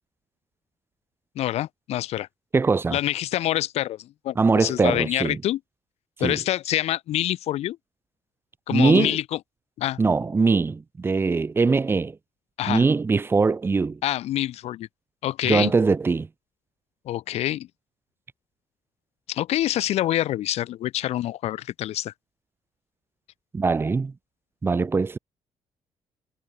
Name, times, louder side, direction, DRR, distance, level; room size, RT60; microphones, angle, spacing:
voice 1, 1.3-2.3 2.9-5.6 6.2-7.8 8.7-9.4 9.8-10.0 12.6-12.8 14.0-14.9 15.2-15.7 17.0-17.7 19.3-22.1, left 13 dB, 70° left, 6.4 m, -26 dB
voice 2, 2.5-3.0 4.4-5.4 6.2-6.4 8.7-9.2 10.0-12.2 12.7-14.0 15.4-16.3 23.5-24.1 24.6-25.2, right 4 dB, 20° right, 7.4 m, -21 dB
cardioid pair, 160°, 11 cm